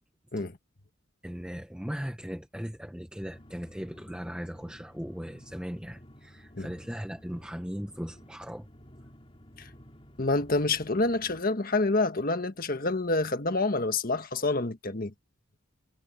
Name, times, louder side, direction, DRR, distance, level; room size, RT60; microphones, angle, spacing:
voice 1, 1.2-8.7, equal, 5° right, 1.2 m, -38 dB
sound 1, 3.2-11.4, equal, 30° left, 3.8 m, -53 dB
voice 2, 10.2-15.1, left 2 dB, 45° left, 1.5 m, -27 dB
head